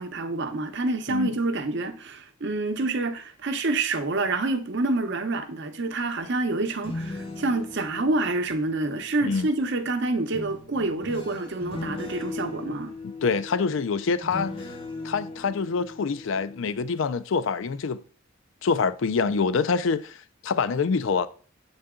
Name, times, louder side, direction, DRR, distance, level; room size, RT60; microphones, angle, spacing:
voice 1, 0.0-12.9, right 2 dB, 60° right, 0.7 m, -27 dB
sound 1, 6.6-9.5 10.3-17.2 17.6-17.9, left 2 dB, 25° left, 0.7 m, -39 dB
voice 2, 13.0-14.7 15.0-18.0 18.6-20.2 20.4-21.3, left 5 dB, 65° left, 0.4 m, -26 dB
7.7 x 4.0 x 3.6 m
head